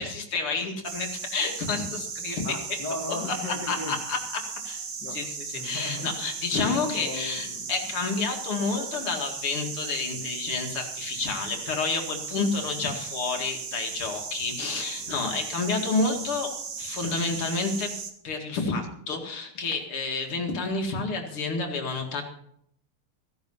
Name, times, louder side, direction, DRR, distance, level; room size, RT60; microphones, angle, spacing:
voice 1, 0.0-2.4 3.7-4.2 4.6-4.8 5.1-5.3 5.6-16.5 16.8-17.9 18.2-22.2, left 4 dB, 75° left, 3 dB, 3.0 m, -29 dB
sound 1, 0.8-18.1, right 5 dB, 55° right, 2.0 m, -36 dB
voice 2, 2.4-4.0 5.0-5.3 5.5-6.1 6.5-8.0 12.4-12.5 15.0-15.4, left 3 dB, 55° left, 3 dB, 2.3 m, -37 dB
16.0 x 10.5 x 5.6 m, 0.71 s
omnidirectional pair, 2.4 m